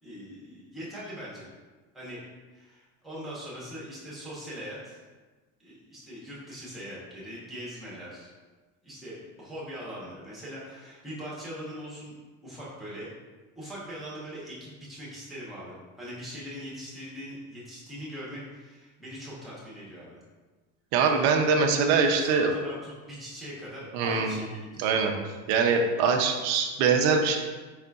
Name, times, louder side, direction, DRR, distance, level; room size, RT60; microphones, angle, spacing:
voice 1, 0.0-1.5 1.9-2.2 2.5-5.0 5.6-8.3 8.8-12.2 12.4-13.1 13.6-20.2 21.0-21.3 22.2-24.9, equal, ahead, -8 dB, 0.8 m, -41 dB
voice 2, 20.9-22.5 23.9-24.4 24.8-25.1 25.5-27.4, right 5 dB, 45° right, 3 dB, 0.4 m, -23 dB
4.8 x 3.8 x 2.3 m, 1.3 s
cardioid pair, 170°, 39 cm